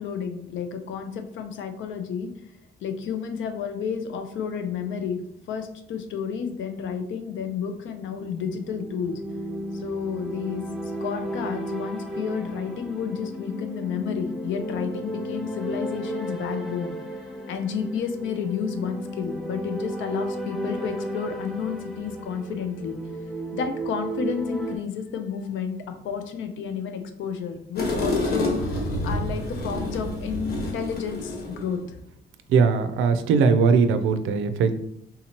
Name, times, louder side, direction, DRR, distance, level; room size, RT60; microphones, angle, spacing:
voice 1, 0.0-2.3 2.8-5.2 5.5-9.2 9.7-16.9 17.5-23.0 23.5-25.8 26.0-32.0, left 7 dB, 75° left, 7 dB, 0.6 m, -31 dB
sound 1, 7.9-24.8, right 1 dB, ahead, 0.7 m, -34 dB
sound 2, 27.8-31.8, left 1 dB, 50° left, 1.3 m, -28 dB
voice 2, 32.5-34.7, right 5 dB, 85° right, 9 dB, 0.4 m, -20 dB
3.7 x 2.8 x 2.9 m, 0.75 s
cardioid pair, 90°, 20 cm